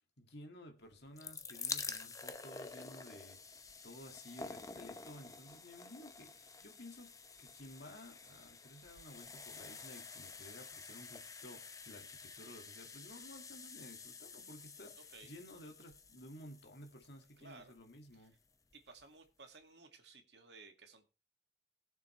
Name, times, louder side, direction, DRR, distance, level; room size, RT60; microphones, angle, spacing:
voice 1, 0.2-18.3, left 1 dB, 70° left, 2.2 m, -54 dB
sound 1, 0.9-17.9 18.7-18.8 19.0-19.1, left 4 dB, 20° left, 0.8 m, -49 dB
voice 2, 17.4-17.7 18.2-18.3 18.7-21.1, right 3 dB, 75° right, 2.1 m, -57 dB
19.5 x 6.9 x 3.3 m
head